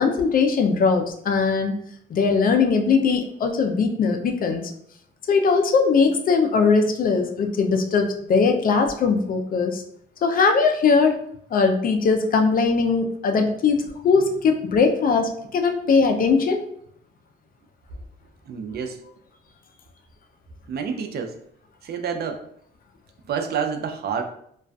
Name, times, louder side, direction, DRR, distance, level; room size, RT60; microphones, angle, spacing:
voice 1, 0.0-1.7 2.1-4.7 5.3-9.8 10.2-11.2 11.5-16.6, left 5 dB, 45° left, 5 dB, 0.4 m, -20 dB
voice 2, 18.5-19.0 20.7-21.3 21.8-22.4 23.2-24.2, right 6 dB, 55° right, 5 dB, 0.4 m, -28 dB
2.4 x 2.3 x 2.2 m, 0.68 s
cardioid pair, 90°, 20 cm